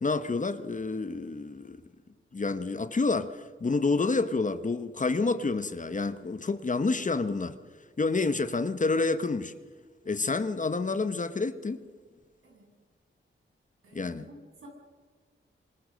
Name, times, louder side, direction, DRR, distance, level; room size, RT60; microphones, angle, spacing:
voice 1, 0.0-1.8 2.3-7.6 8.0-9.5 10.0-11.9 13.9-14.3, left 3 dB, 35° left, 1.1 m, -28 dB
voice 2, 13.8-14.7, right 1 dB, 75° right, 7.7 m, -52 dB
26.5 x 26.0 x 6.5 m
wide cardioid pair, 110°, 21 cm